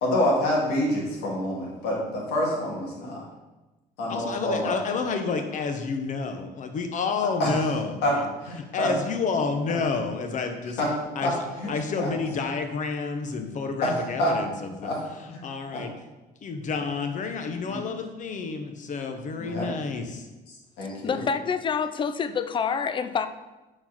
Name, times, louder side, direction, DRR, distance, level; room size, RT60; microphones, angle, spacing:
voice 1, 0.0-3.2 4.0-4.7 7.4-7.6 8.0-8.1 8.4-8.9 10.8-10.9 11.2-11.3 11.6-11.7 12.0-12.1 13.8-14.4 14.8-15.0 15.7-15.8 16.8-16.9 17.7-17.8 19.4-19.7 20.8-21.2, left 1 dB, 90° left, -3 dB, 2.1 m, -26 dB
voice 2, 4.1-8.3 8.7-10.8 11.2-11.3 11.7-14.5 14.8-14.9 15.3-15.9 16.4-20.1, left 4 dB, 50° left, 6 dB, 0.9 m, -29 dB
voice 3, 21.0-23.3, left 6 dB, 30° left, 11 dB, 0.4 m, -27 dB
4.6 x 4.4 x 5.8 m, 1.1 s
cardioid pair, 110°, 17 cm